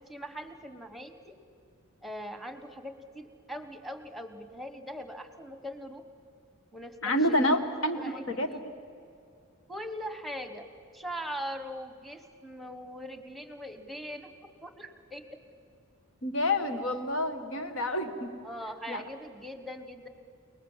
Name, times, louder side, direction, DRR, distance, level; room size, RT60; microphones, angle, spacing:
voice 1, 0.1-1.3 2.0-6.0 6.7-7.0 7.3-7.4 8.0-8.6 9.7-10.6 10.9-14.3 14.6-15.4 18.4-20.1, equal, ahead, 7 dB, 1.3 m, -41 dB
voice 2, 7.0-8.6 16.2-18.3 18.9-19.0, left 1 dB, 70° left, 7 dB, 1.8 m, -28 dB
29.0 x 20.0 x 7.5 m, 2.5 s
head